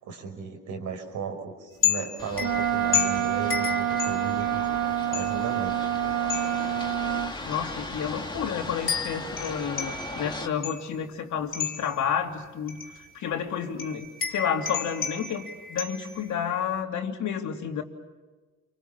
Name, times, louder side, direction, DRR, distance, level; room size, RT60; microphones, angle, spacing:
voice 1, 0.0-4.8 5.1-5.8, right 5 dB, 80° right, 3 dB, 6.0 m, -36 dB
sound 1, 1.8-4.6 5.1-5.6 6.3-6.8 7.5-7.7 8.9-11.0 11.5-12.1 12.7-13.1 13.8-16.3, left 8 dB, 45° left, 3.3 m, -32 dB
sound 2, 2.2-10.5, left 2 dB, 15° left, 2.9 m, -38 dB
Wind instrument woodwind instrument, 2.4-7.3, right 10 dB, 65° right, 1.1 m, -27 dB
voice 2, 7.4-12.8 13.1-17.8, left 8 dB, 70° left, 4 dB, 3.0 m, -30 dB
28.5 x 25.0 x 7.3 m, 1.3 s
cardioid pair, 90°, 30 cm